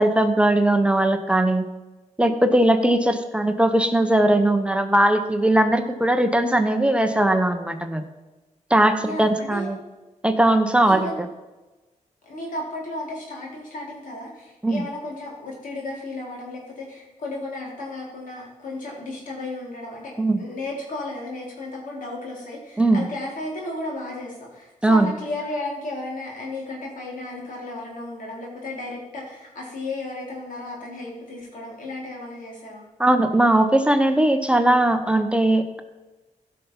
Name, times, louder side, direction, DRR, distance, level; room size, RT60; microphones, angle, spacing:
voice 1, 0.0-1.6 2.2-8.0 8.7-9.8 10.2-11.1 14.6-14.8 20.2-20.4 22.8-23.0 24.8-25.1 33.0-35.8, right 1 dB, 10° right, 7 dB, 0.8 m, -19 dB
voice 2, 9.0-9.7 10.8-11.2 12.2-20.1 20.4-32.9, left 2 dB, 90° left, -3 dB, 3.9 m, -34 dB
15.5 x 5.8 x 5.6 m, 1.1 s
wide cardioid pair, 135°, 13 cm